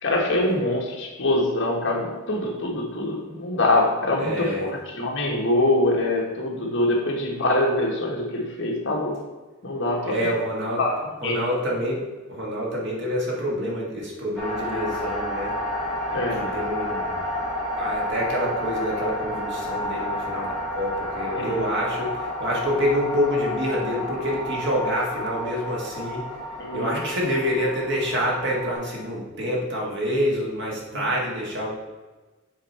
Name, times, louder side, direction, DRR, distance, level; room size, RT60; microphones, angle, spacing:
voice 1, 0.0-9.1 9.6-10.3 10.8-10.9 11.2-11.4 16.1-16.5 21.4-21.6 26.6-27.0 30.9-31.0, left 1 dB, 60° left, -1 dB, 1.5 m, -24 dB
voice 2, 4.2-4.7 10.1-10.8 11.2-12.0 12.3-15.5 16.4-17.2 17.8-26.3 26.7-31.7, equal, 55° right, -3 dB, 1.8 m, -27 dB
sound 1, 14.4-28.7, left 1 dB, ahead, 2.4 m, -30 dB
7.5 x 4.4 x 4.4 m, 1.3 s
head